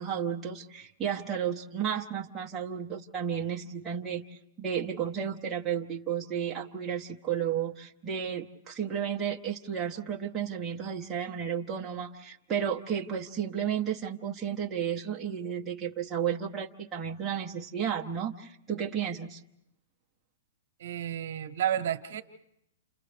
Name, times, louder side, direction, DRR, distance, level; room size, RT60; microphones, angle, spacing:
voice 1, 0.0-19.4, right 8 dB, 10° right, -3 dB, 0.9 m, -33 dB
voice 2, 20.8-22.2, right 10 dB, 60° right, 7 dB, 1.1 m, -31 dB
30.0 x 28.5 x 3.4 m, 0.80 s
hypercardioid pair, 170°, 0 cm